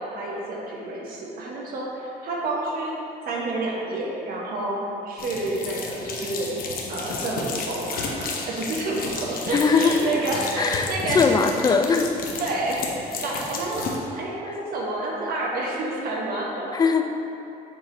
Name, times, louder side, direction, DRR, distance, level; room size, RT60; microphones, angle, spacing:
voice 1, 0.0-2.9 3.2-4.8 5.0-6.6 6.9-11.2 12.4-12.8 13.1-16.7, right 2 dB, 60° right, -3 dB, 1.3 m, -29 dB
sound 1, 5.2-14.0, left 4 dB, 60° left, 0.8 m, -32 dB
voice 2, 9.5-10.0 10.6-12.1 16.7-17.1, left 5 dB, 25° left, 5 dB, 0.4 m, -20 dB
7.4 x 3.0 x 4.4 m, 2.8 s
cardioid pair, 110°, 17 cm